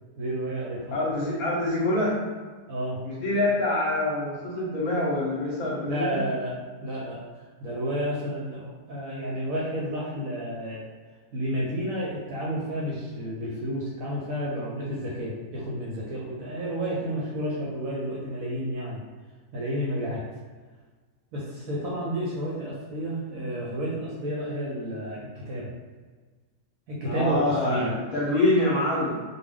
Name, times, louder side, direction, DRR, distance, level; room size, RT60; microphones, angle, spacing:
voice 1, 0.2-0.9 2.7-3.0 5.9-10.8 11.3-19.0 19.5-20.2 21.3-25.7 26.9-27.9, right 1 dB, 70° right, -5 dB, 0.8 m, -31 dB
voice 2, 0.9-2.2 3.0-6.2 27.0-29.2, left 2 dB, 65° left, -5 dB, 1.0 m, -25 dB
2.7 x 2.3 x 3.4 m, 1.4 s
omnidirectional pair, 1.9 m